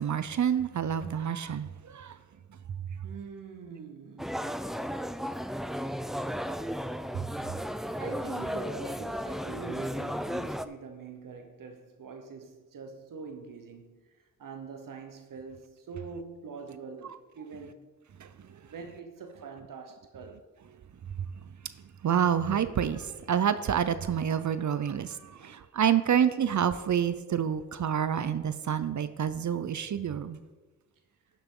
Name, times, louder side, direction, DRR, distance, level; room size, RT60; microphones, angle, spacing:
voice 1, 0.0-2.2 18.2-18.5 22.0-30.4, right 8 dB, 65° right, 0.6 m, -28 dB
voice 2, 3.0-4.5 7.9-17.8 18.6-20.5, right 5 dB, 90° right, 0.9 m, -44 dB
sound 1, 4.2-10.7, equal, ahead, 0.4 m, -34 dB
11.5 x 7.0 x 3.7 m
cardioid pair, 60°, 32 cm